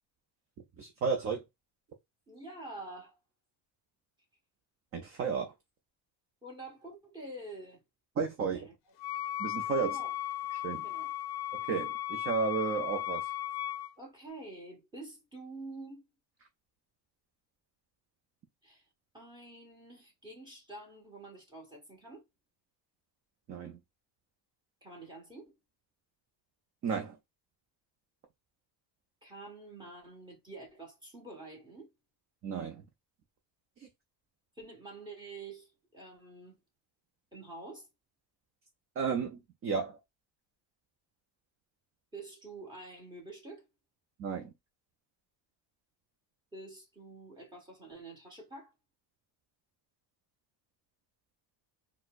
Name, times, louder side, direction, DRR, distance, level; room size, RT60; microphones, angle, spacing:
voice 1, 0.8-1.4 4.9-5.5 8.2-8.7 9.4-10.0 10.5-10.9 11.5-13.3 23.5-23.8 26.8-27.2 32.4-32.8 33.8-33.9 39.0-40.0 44.2-44.5, right 5 dB, 30° right, 0.4 m, -33 dB
voice 2, 2.3-3.2 6.4-7.8 8.5-8.7 9.6-10.1 10.8-11.1 14.0-16.1 18.6-18.8 19.1-22.2 24.8-25.6 29.2-31.9 34.6-36.6 37.3-37.9 42.1-43.6 46.5-48.7, right 2 dB, 10° right, 1.2 m, -47 dB
Wind instrument woodwind instrument, 9.0-13.9, left 12 dB, 60° left, 0.5 m, -36 dB
4.2 x 2.0 x 2.3 m
cardioid pair, 145°, 46 cm